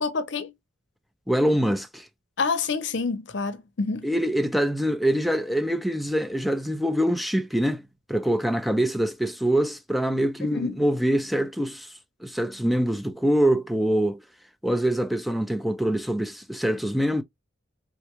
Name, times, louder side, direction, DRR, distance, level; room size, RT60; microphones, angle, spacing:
voice 1, 0.0-0.5 2.4-4.1 10.4-10.8, left 4 dB, 65° left, 0.7 m, -28 dB
voice 2, 1.3-2.1 4.0-7.8 8.1-11.9 12.2-14.2 14.6-17.2, right 1 dB, ahead, 0.4 m, -24 dB
3.6 x 2.2 x 2.9 m
head